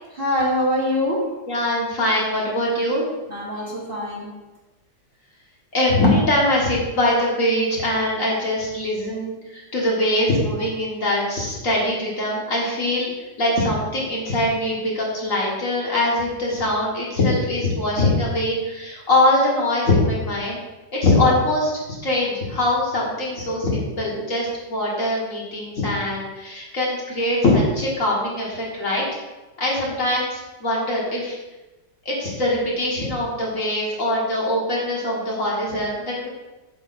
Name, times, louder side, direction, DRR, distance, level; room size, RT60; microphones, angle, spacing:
voice 1, 0.1-1.3 3.3-4.3, left 1 dB, 35° right, -6 dB, 1.3 m, -24 dB
voice 2, 1.5-3.1 5.7-13.1 13.4-20.6 20.9-29.0 29.6-31.4 32.1-36.3, left 1 dB, 45° left, -4 dB, 1.8 m, -22 dB
7.6 x 4.8 x 4.0 m, 1.1 s
omnidirectional pair, 2.0 m